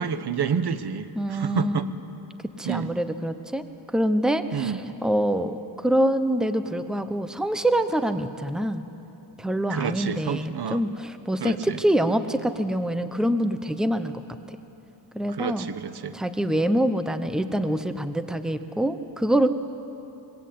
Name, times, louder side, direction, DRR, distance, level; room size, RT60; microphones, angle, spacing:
voice 1, 0.0-1.9 2.6-2.9 4.5-4.8 9.7-10.8 11.4-11.8 15.3-16.2, right 7 dB, 55° right, 11 dB, 1.1 m, -29 dB
voice 2, 1.1-2.0 2.6-3.6 3.9-4.7 5.0-8.8 9.4-14.2 14.5-14.6 15.1-15.7 16.1-19.5, right 1 dB, ahead, 9 dB, 0.9 m, -25 dB
25.5 x 21.5 x 8.6 m, 3.0 s
wide cardioid pair, 140°, 47 cm